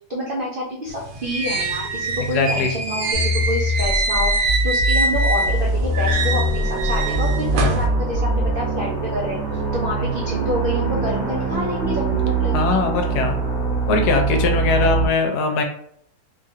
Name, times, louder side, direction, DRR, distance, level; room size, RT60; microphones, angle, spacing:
voice 1, 0.0-12.8 14.8-14.9, equal, 70° right, -3 dB, 0.5 m, -28 dB
sound 1, 0.9-5.6 5.9-7.9, right 3 dB, 90° right, 1.2 m, -24 dB
voice 2, 2.3-2.8 9.9-10.1 12.5-13.4 13.9-15.6, left 4 dB, 80° left, 4 dB, 1.1 m, -21 dB
sound 2, 3.1-8.6, left 1 dB, 45° left, 0.6 m, -22 dB
sound 3, 5.4-15.1, right 5 dB, 45° right, 1.2 m, -24 dB
2.9 x 2.4 x 2.7 m, 0.67 s
omnidirectional pair, 1.7 m